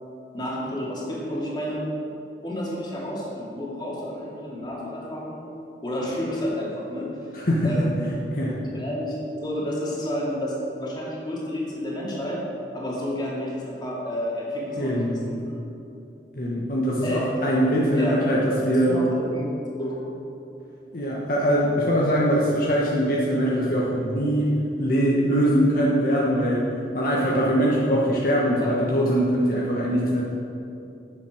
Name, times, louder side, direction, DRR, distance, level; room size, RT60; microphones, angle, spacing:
voice 1, 0.3-1.8 2.4-5.4 5.8-7.1 7.6-8.0 8.4-12.4 12.7-15.4 17.0-17.2 17.9-18.2 18.8-19.5 19.7-20.0 28.6-28.7, equal, 25° left, -5 dB, 2.3 m, -30 dB
voice 2, 7.3-7.7 8.3-8.5 14.8-15.1 16.3-19.1 20.9-24.5 24.8-26.7 26.9-30.2, equal, 55° left, -4 dB, 1.2 m, -22 dB
9.0 x 7.3 x 6.4 m, 2.8 s
head